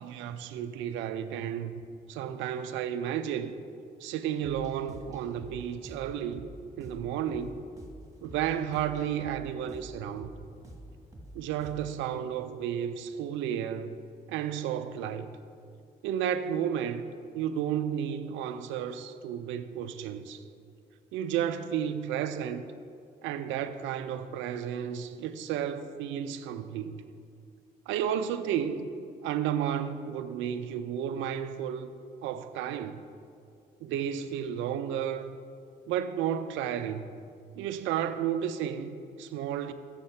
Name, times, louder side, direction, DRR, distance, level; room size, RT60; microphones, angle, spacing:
voice 1, 0.0-1.7 2.1-3.5 4.0-6.5 6.8-7.6 8.2-10.3 11.3-14.0 14.3-15.4 16.0-17.1 17.3-20.4 21.1-22.6 23.2-27.0 27.9-28.9 29.2-31.9 32.2-33.0 33.8-35.4 35.9-37.2 37.6-39.7, right 9 dB, 80° right, 0.4 m, -32 dB
sound 1, 4.4-12.1, equal, 15° right, 1.5 m, -48 dB
7.1 x 6.6 x 4.3 m
hypercardioid pair, 50°, 19 cm